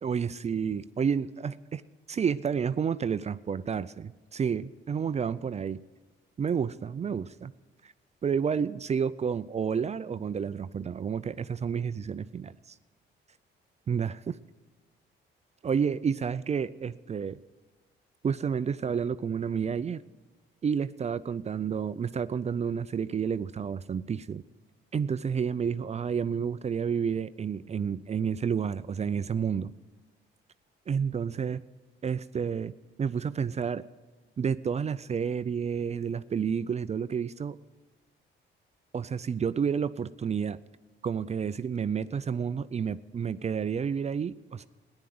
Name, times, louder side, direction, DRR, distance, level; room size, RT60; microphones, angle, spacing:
voice 1, 0.0-1.8 2.1-5.8 6.4-7.5 7.8-7.9 8.2-12.5 13.9-14.4 15.6-17.4 18.2-20.0 20.6-24.4 24.9-29.7 30.9-31.6 32.0-32.7 33.0-33.8 34.4-37.6 38.9-40.6 41.0-44.7, right 7 dB, 35° right, 14 dB, 0.5 m, -30 dB
14.5 x 10.5 x 7.8 m, 1.3 s
cardioid pair, 90°, 20 cm